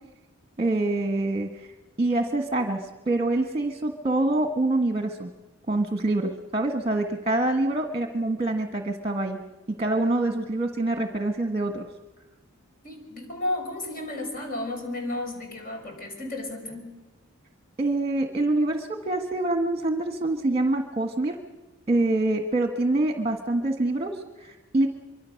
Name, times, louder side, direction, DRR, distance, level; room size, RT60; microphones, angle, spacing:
voice 1, 0.6-1.7 2.0-5.3 5.7-9.4 9.8-11.8 17.8-21.4 21.9-24.9, right 2 dB, 25° right, 6 dB, 1.5 m, -25 dB
voice 2, 12.8-16.9, left 2 dB, 40° left, 3 dB, 6.0 m, -33 dB
25.0 x 24.0 x 6.5 m, 1.1 s
head